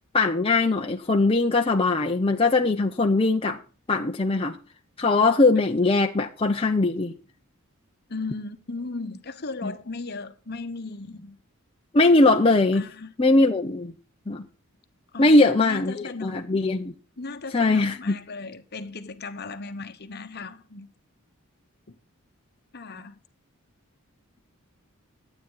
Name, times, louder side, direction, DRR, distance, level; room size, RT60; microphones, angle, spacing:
voice 1, 0.1-3.6 3.9-4.6 5.0-7.1 9.6-9.7 11.9-12.8 13.2-13.9 14.3-14.4 15.2-16.9 17.5-18.2, left 2 dB, 25° left, 0.7 m, -21 dB
voice 2, 8.1-11.4 12.7-13.1 15.1-16.5 17.2-20.9 21.9-22.0 22.7-23.2, left 3 dB, 50° left, 1.1 m, -36 dB
12.0 x 9.0 x 3.9 m
head